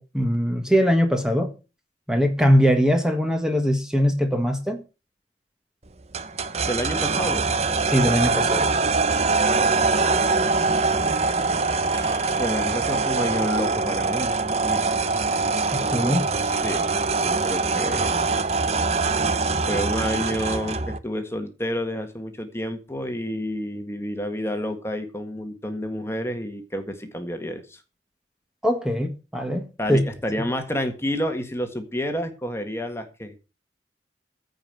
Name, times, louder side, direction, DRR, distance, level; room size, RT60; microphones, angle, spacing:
voice 1, 0.0-1.5 2.1-4.8 7.9-8.7 15.7-16.3 28.6-29.6 29.9-30.0, equal, 5° right, 1.6 m, -21 dB
sound 1, 6.1-21.0, right 4 dB, 35° right, 0.9 m, -23 dB
voice 2, 6.7-7.5 11.9-14.4 14.6-14.9 16.4-18.3 19.7-27.8 29.8-33.4, equal, 15° left, 1.7 m, -29 dB
15.0 x 5.4 x 7.7 m
head